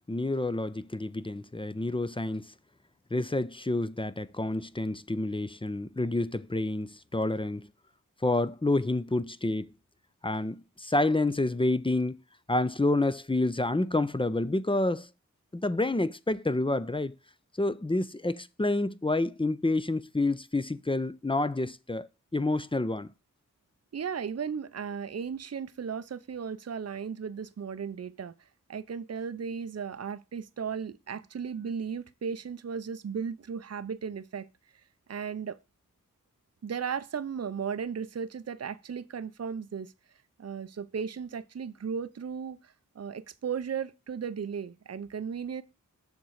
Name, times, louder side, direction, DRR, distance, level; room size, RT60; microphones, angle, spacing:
voice 1, 0.1-2.5 3.1-7.7 8.2-9.7 10.2-12.2 12.5-15.1 15.5-17.2 17.6-22.1 22.3-23.1, left 2 dB, 15° left, 0.6 m, -28 dB
voice 2, 23.9-28.3 28.7-34.5 35.1-35.6 36.6-39.9 40.4-45.6, right 6 dB, 50° right, 0.7 m, -35 dB
7.3 x 3.8 x 6.3 m
cardioid pair, 40°, 33 cm